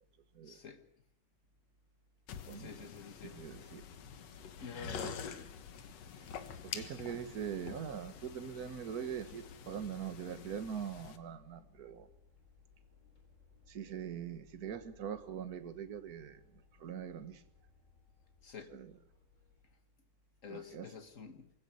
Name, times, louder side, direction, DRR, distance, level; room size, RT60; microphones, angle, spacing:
voice 1, 0.4-0.8 2.5-3.4 4.6-5.4 18.4-18.7 20.4-21.5, left 5 dB, 40° left, 1.2 m, -48 dB
sound 1, 2.3-11.2, left 7 dB, 60° left, 2.3 m, -47 dB
voice 2, 2.4-2.9 3.2-3.9 4.7-5.1 6.1-6.3 6.6-12.1 13.7-17.4 18.6-19.0 20.5-20.9, right 8 dB, 45° right, 1.2 m, -43 dB
sound 2, 3.1-19.7, left 6 dB, 25° left, 4.0 m, -65 dB
24.0 x 16.5 x 9.5 m
omnidirectional pair, 3.5 m